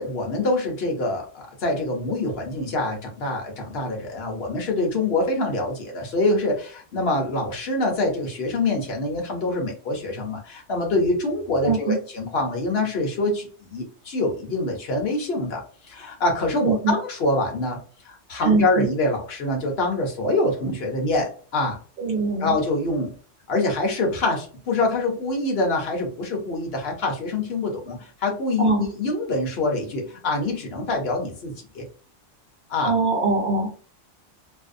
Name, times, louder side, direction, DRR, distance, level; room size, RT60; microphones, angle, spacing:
voice 1, 0.0-17.8 18.0-21.8 22.4-23.1 23.5-31.8 32.7-32.9, left 2 dB, 60° left, 1 dB, 0.9 m, -25 dB
voice 2, 11.6-12.0 16.6-16.9 18.4-18.9 22.0-22.5 28.6-28.8 32.8-33.7, right 3 dB, 55° right, 0 dB, 0.8 m, -22 dB
2.6 x 2.0 x 2.5 m, 0.40 s
omnidirectional pair, 1.3 m